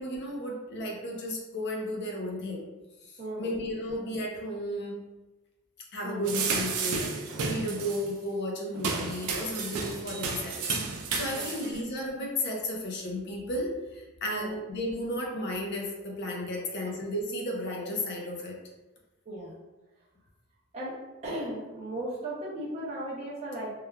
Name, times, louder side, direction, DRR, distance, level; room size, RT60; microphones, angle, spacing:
voice 1, 0.0-2.7 3.0-5.1 5.9-18.6, left 1 dB, 50° left, 0 dB, 0.5 m, -34 dB
voice 2, 3.2-3.6 3.8-3.9 6.0-6.4 11.3-11.6 14.3-14.6 16.8-16.9 19.3-19.6 20.7-20.9 21.2-23.7, right 1 dB, 30° right, -7 dB, 0.5 m, -36 dB
sound 1, 6.2-8.1 8.7-11.8, right 4 dB, 90° right, 0.4 m, -32 dB
3.1 x 2.3 x 2.2 m, 1.1 s
head